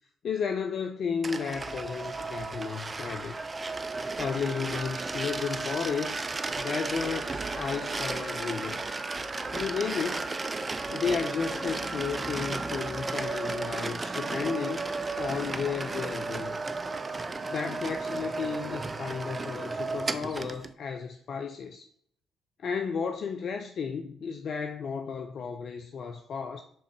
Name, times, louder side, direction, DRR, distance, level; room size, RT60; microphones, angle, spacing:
voice 1, 0.2-3.4 4.2-6.2 6.6-9.0 9.5-10.4 10.9-14.9 15.2-16.6 17.5-21.9 22.6-26.6, left 6 dB, 55° left, 0.3 m, -33 dB
sound 1, 1.2-20.7, right 3 dB, 30° right, 0.4 m, -34 dB
4.5 x 3.5 x 3.2 m
hypercardioid pair, 45°, 0 cm